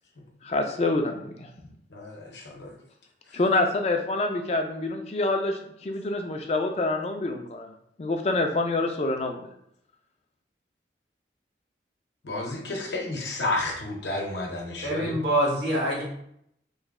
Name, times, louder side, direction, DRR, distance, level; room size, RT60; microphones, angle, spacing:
voice 1, 0.4-1.5 3.3-7.7 8.0-9.5, left 2 dB, 35° left, 4 dB, 0.3 m, -26 dB
voice 2, 1.9-2.7 12.2-15.2, left 2 dB, 85° left, 0 dB, 0.8 m, -31 dB
voice 3, 14.8-16.0, right 1 dB, 80° right, -5 dB, 1.4 m, -25 dB
3.1 x 2.2 x 3.5 m, 0.73 s
head